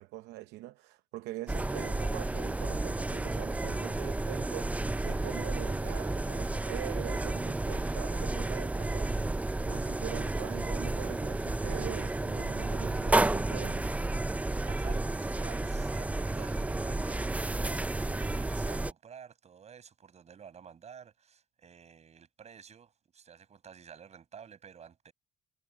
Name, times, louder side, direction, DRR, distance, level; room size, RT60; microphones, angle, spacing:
voice 1, 0.0-9.4 9.6-13.9, right 16 dB, 90° right, 0.7 m, -43 dB
sound 1, 1.5-18.9, right 2 dB, 10° right, 0.5 m, -31 dB
voice 2, 14.3-17.7 18.1-25.1, right 7 dB, 40° right, 5.7 m, -51 dB
cardioid pair, 110°, 17 cm